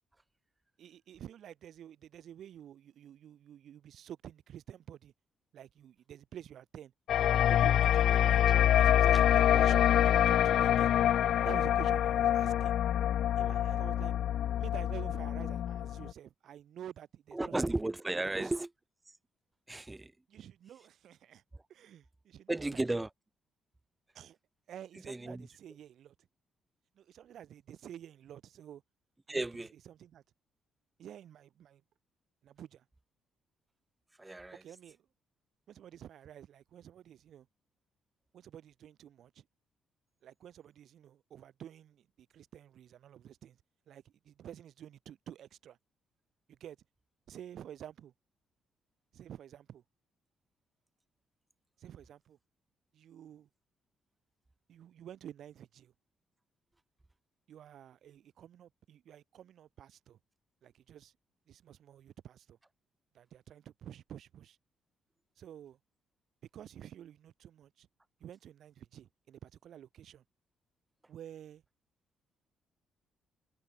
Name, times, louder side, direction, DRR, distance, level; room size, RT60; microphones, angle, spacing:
voice 1, 0.8-5.1 5.5-6.9 7.3-8.5 8.7-10.9 11.4-12.8 13.4-14.1 14.6-17.5 18.3-18.5 20.3-21.4 21.7-23.0 24.1-24.4 24.7-26.1 26.9-28.8 29.3-29.5 29.8-30.2 31.0-31.8 32.4-32.8 34.6-35.1 35.7-37.5 38.3-39.5 40.2-43.6 43.9-45.8 46.5-46.8 47.3-48.1 49.1-49.8 51.8-52.4 52.9-53.5 54.7-55.9 57.5-60.2 60.6-61.1 61.5-62.6 63.1-64.6 65.4-65.8 66.5-67.9 68.2-70.2 71.1-71.6, right 10 dB, 70° right, 7.7 m, -50 dB
sound 1, 7.1-16.1, left 11 dB, 75° left, 0.6 m, -26 dB
voice 2, 17.3-18.7 19.7-20.1 22.5-23.1 25.1-25.5 29.3-29.7 34.2-34.6, right 2 dB, 15° right, 1.2 m, -34 dB
cardioid pair, 90°, 0 cm